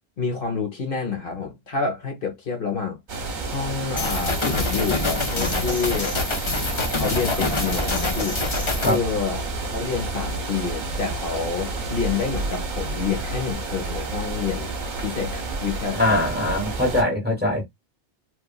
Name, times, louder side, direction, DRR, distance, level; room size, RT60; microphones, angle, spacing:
voice 1, 0.2-3.0 3.5-6.1 7.0-8.4 8.7-9.5 9.7-14.7 15.0-16.4, left 5 dB, 60° left, 1.2 m, -28 dB
sound 1, 3.1-17.0, right 3 dB, 50° right, 0.8 m, -30 dB
sound 2, 4.0-9.0, left 3 dB, 35° left, 0.6 m, -26 dB
voice 2, 16.0-17.7, left 1 dB, 10° right, 1.3 m, -22 dB
3.1 x 2.4 x 2.3 m
omnidirectional pair, 1.0 m